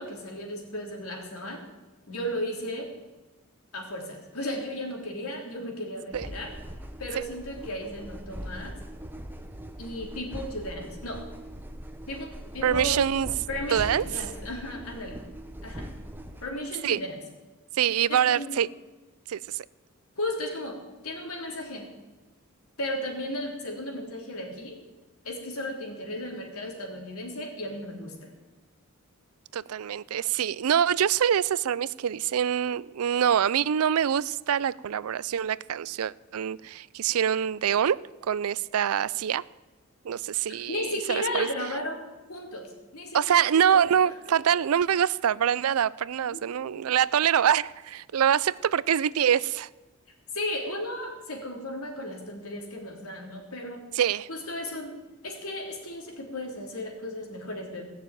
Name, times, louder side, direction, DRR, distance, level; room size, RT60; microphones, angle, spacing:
voice 1, 0.0-1.6 2.1-2.9 3.7-6.5 7.0-8.7 9.8-11.2 12.0-13.0 13.5-15.2 15.6-15.9 16.4-17.2 18.1-18.7 20.2-20.8 21.0-21.9 22.8-24.8 25.2-28.3 40.7-42.0 42.3-43.8 44.1-44.4 46.3-46.8 50.3-53.8 54.3-54.9 55.2-57.8, left 1 dB, 85° left, 3.4 m, -35 dB
sound 1, 6.1-16.5, equal, 10° right, 0.9 m, -41 dB
voice 2, 12.6-13.3 13.7-14.0 16.8-17.0 17.8-18.7 19.3-19.6 29.5-39.4 40.0-41.5 43.1-49.7 53.9-54.3, right 9 dB, 85° right, 0.4 m, -25 dB
17.5 x 6.8 x 9.1 m
head